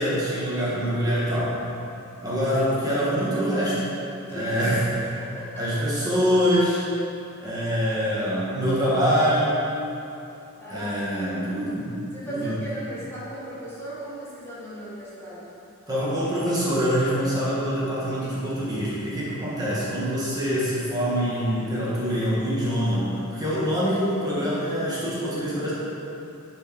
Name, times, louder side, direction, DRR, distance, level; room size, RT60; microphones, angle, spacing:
voice 1, 0.0-1.5 2.2-3.8 4.3-4.9 5.6-6.8 7.4-9.7 10.7-11.9 12.3-12.5 15.9-25.7, equal, 20° right, -9 dB, 2.0 m, -24 dB
voice 2, 4.3-4.7 5.2-5.7 10.6-11.2 12.1-15.5, right 1 dB, 10° left, -10 dB, 1.9 m, -37 dB
10.5 x 5.0 x 4.7 m, 2.9 s
head